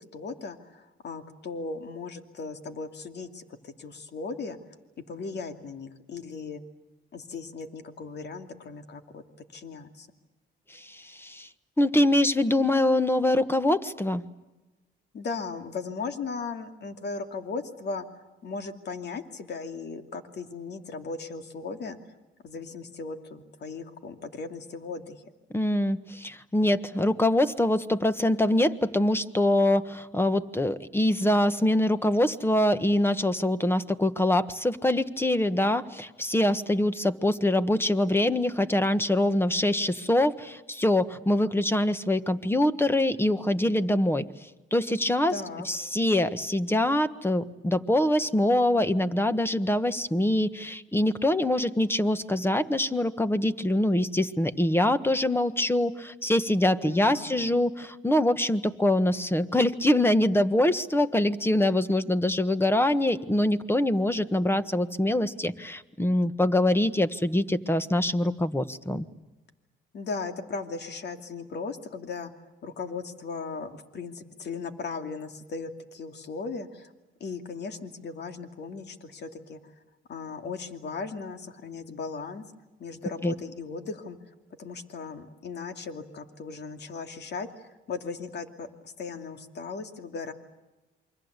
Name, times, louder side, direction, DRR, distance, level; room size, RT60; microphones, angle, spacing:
voice 1, 0.1-4.6 5.1-6.6 7.1-9.2 9.5-10.1 15.1-18.0 18.4-22.0 22.4-25.3 45.3-45.7 56.8-57.6 69.9-72.3 72.6-76.9 77.2-79.7 80.1-82.4 82.8-90.3, left 4 dB, 60° left, 7 dB, 2.6 m, -37 dB
voice 2, 10.7-11.5 11.8-14.2 25.5-44.3 44.7-45.3 45.6-69.1 83.2-83.3, left 1 dB, 10° left, 12 dB, 1.4 m, -24 dB
28.5 x 24.5 x 8.3 m, 1.1 s
cardioid pair, 90°, 20 cm